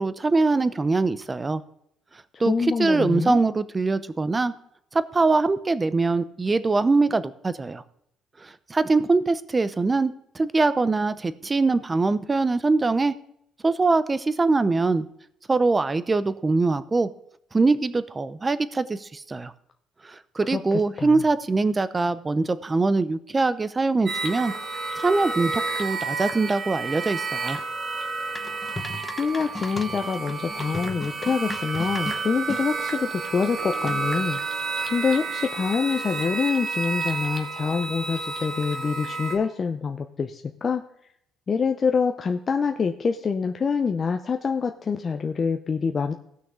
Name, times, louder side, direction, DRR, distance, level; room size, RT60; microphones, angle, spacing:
voice 1, 0.0-1.6 2.4-4.5 4.9-7.8 8.4-13.1 13.6-15.1 15.5-17.1 17.5-19.5 20.0-24.5 25.0-27.6, right 3 dB, 20° right, 14 dB, 0.6 m, -23 dB
voice 2, 2.3-3.4 20.5-21.2 29.1-34.4 34.9-40.8 41.5-46.1, left 5 dB, 35° left, 5 dB, 0.6 m, -26 dB
sound 1, 24.1-39.4, right 4 dB, 45° right, 1.4 m, -31 dB
sound 2, 28.4-32.7 33.9-34.3, left 2 dB, 15° left, 0.9 m, -37 dB
sound 3, 33.6-35.9, right 7 dB, 75° right, 2.6 m, -47 dB
16.5 x 6.0 x 3.7 m, 0.72 s
cardioid pair, 115°, 0 cm